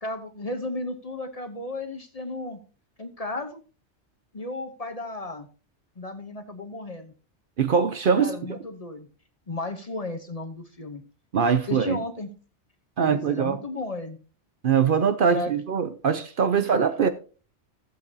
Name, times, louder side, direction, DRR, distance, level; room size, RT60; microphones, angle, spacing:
voice 1, 0.0-2.6 3.0-3.6 4.3-5.5 6.0-7.1 8.2-9.1 9.5-11.0 11.7-12.3 13.0-14.2 15.3-15.5, left 2 dB, 35° left, 0.9 m, -34 dB
voice 2, 7.6-8.3 11.3-12.0 13.0-13.6 14.6-17.1, right 6 dB, 55° right, 0.8 m, -22 dB
15.0 x 7.5 x 2.7 m
omnidirectional pair, 1.2 m